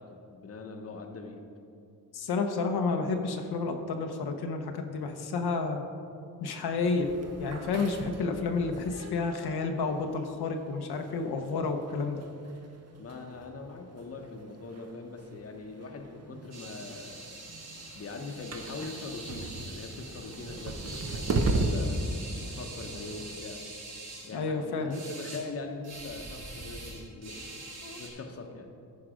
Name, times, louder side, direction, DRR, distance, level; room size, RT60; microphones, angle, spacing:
voice 1, 0.0-1.4 13.0-17.4 17.9-23.6 24.2-27.6 27.9-28.7, left 3 dB, 40° left, 3 dB, 0.9 m, -42 dB
voice 2, 2.1-5.8 6.4-7.1 7.4-12.2 24.3-25.0 27.8-28.0, left 4 dB, 80° left, 4 dB, 0.9 m, -30 dB
sound 1, 6.8-23.4, right 2 dB, 40° right, 0.8 m, -37 dB
sound 2, 16.5-24.3 24.9-25.4 25.8-28.1, right 2 dB, 80° right, 2.5 m, -44 dB
14.0 x 4.8 x 5.0 m, 2.5 s
wide cardioid pair, 110°, 37 cm